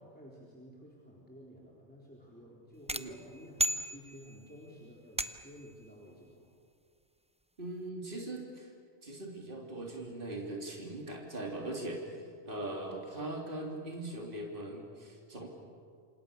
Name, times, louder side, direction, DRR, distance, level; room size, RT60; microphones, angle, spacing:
voice 1, 0.0-6.5, equal, 10° left, -4 dB, 3.8 m, -53 dB
sound 1, 2.9-4.5 5.2-5.7, right 1 dB, 10° right, 0.3 m, -35 dB
voice 2, 7.6-8.7 9.0-12.2 12.4-15.5, right 1 dB, 45° right, -1 dB, 3.5 m, -40 dB
28.0 x 26.5 x 6.9 m, 2.2 s
omnidirectional pair, 1.2 m